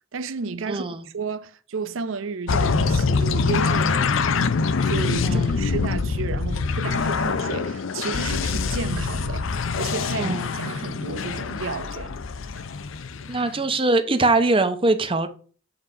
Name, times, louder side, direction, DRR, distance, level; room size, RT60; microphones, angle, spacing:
voice 1, 0.1-4.5 4.8-12.2, right 5 dB, 75° right, 0.5 m, -32 dB
voice 2, 0.7-1.1 5.2-5.6 10.2-10.5 13.3-15.3, right 2 dB, 25° right, 0.8 m, -22 dB
sound 1, 2.5-13.6, left 4 dB, 75° left, 0.6 m, -24 dB
7.8 x 4.1 x 4.9 m
head